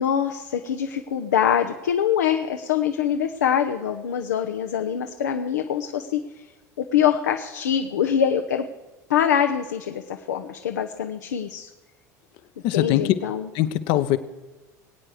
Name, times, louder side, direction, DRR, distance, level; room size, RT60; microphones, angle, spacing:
voice 1, 0.0-6.2 6.8-8.6 9.1-11.7 12.7-13.5, left 9 dB, 85° left, 5 dB, 0.8 m, -24 dB
voice 2, 12.6-13.1 13.5-14.2, left 13 dB, 60° left, 12 dB, 1.0 m, -21 dB
22.5 x 8.9 x 4.9 m, 1.2 s
hypercardioid pair, 75°, 9 cm